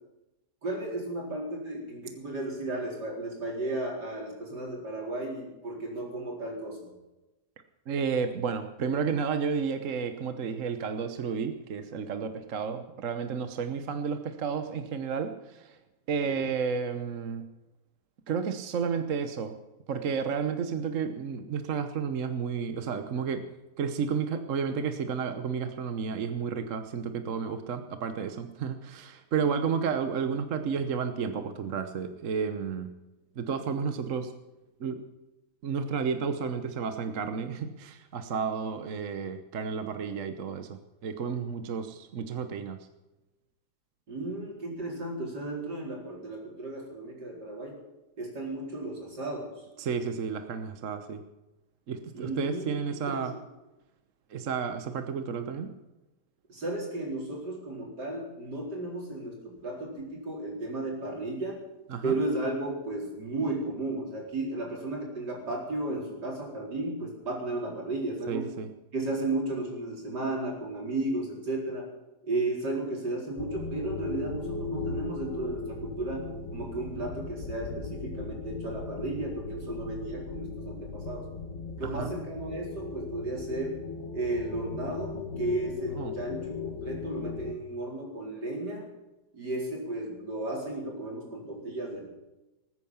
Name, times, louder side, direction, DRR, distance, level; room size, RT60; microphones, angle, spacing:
voice 1, 0.6-6.9 12.7-12.8 16.1-16.5 44.1-47.8 48.2-49.5 52.1-53.3 56.5-61.6 62.0-68.5 68.9-71.9 72.2-81.3 81.8-83.8 84.1-88.9 89.3-92.0, right 2 dB, 80° right, -1 dB, 5.0 m, -34 dB
voice 2, 7.9-15.8 16.1-17.4 18.3-19.5 19.9-23.4 23.8-32.9 33.4-34.3 34.8-35.0 35.6-42.8 49.8-51.2 51.9-53.3 54.3-55.7 61.9-62.2 68.3-68.7 81.8-82.1 86.0-86.1, right 6 dB, 55° right, 8 dB, 1.2 m, -32 dB
sound 1, 73.4-87.5, left 4 dB, 45° left, 1.6 m, -37 dB
19.5 x 9.5 x 7.1 m, 1.0 s
omnidirectional pair, 1.8 m